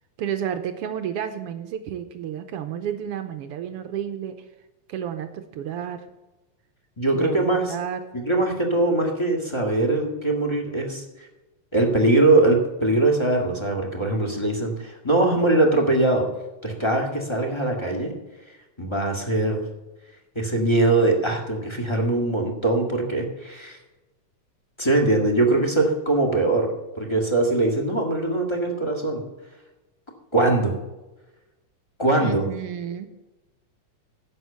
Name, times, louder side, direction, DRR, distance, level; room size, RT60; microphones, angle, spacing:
voice 1, 0.2-4.4 4.9-6.1 7.1-8.0 32.2-33.1, right 9 dB, 75° right, 8 dB, 1.4 m, -31 dB
voice 2, 7.0-7.7 8.1-11.0 11.7-16.3 16.6-18.1 18.8-19.6 20.3-23.8 24.8-29.2 30.3-30.7 32.0-32.4, right 2 dB, 10° left, 1 dB, 1.4 m, -22 dB
11.0 x 8.0 x 6.9 m, 1.1 s
omnidirectional pair, 3.4 m